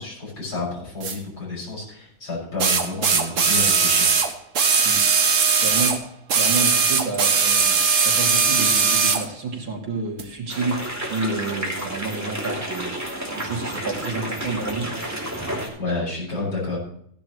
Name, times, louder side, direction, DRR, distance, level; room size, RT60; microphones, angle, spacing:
voice 1, 0.0-4.1 15.8-16.8, left 3 dB, 50° left, -3 dB, 6.6 m, -30 dB
sound 1, 1.0-1.1 2.6-6.0 6.3-9.2 10.2-10.3, right 5 dB, 45° right, 1.3 m, -19 dB
voice 2, 5.5-5.9 6.3-10.8 11.1-12.9 13.3-14.9, right 3 dB, 75° right, -1 dB, 3.3 m, -29 dB
sound 2, 10.5-15.7, right 1 dB, 10° right, 2.8 m, -30 dB
16.0 x 10.5 x 3.1 m, 0.67 s
omnidirectional pair, 2.2 m